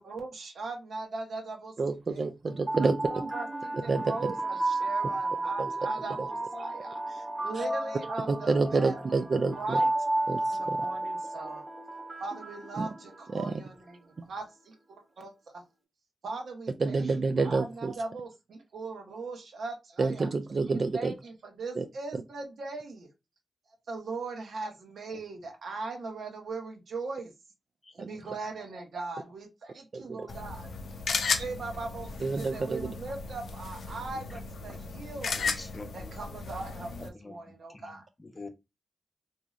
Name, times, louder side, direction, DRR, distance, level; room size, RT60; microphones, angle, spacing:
voice 1, 0.0-1.7 2.1-2.3 2.8-9.2 9.5-9.9 10.5-11.6 12.2-15.6 16.2-20.3 20.7-23.1 23.9-27.3 27.9-30.8 31.3-35.4 35.9-38.0, right 3 dB, 80° right, 0.9 m, -39 dB
voice 2, 1.8-3.0 3.9-4.0 5.6-5.7 7.6-7.7 8.3-9.8 10.3-10.8 12.8-12.9 13.3-13.4 14.2-14.3 16.8-17.9 20.0-21.1 21.8-21.9 28.0-28.1 29.9-30.2 32.2-32.9, right 4 dB, 55° right, 0.3 m, -28 dB
sound 1, 2.4-13.5, right 2 dB, 20° right, 0.9 m, -33 dB
voice 3, 27.8-28.4 34.7-34.8 35.4-36.1 37.1-38.5, left 3 dB, 30° left, 0.6 m, -47 dB
sound 2, 30.3-37.1, left 4 dB, 80° left, 0.4 m, -35 dB
3.0 x 2.6 x 2.3 m
cardioid pair, 60°, 0 cm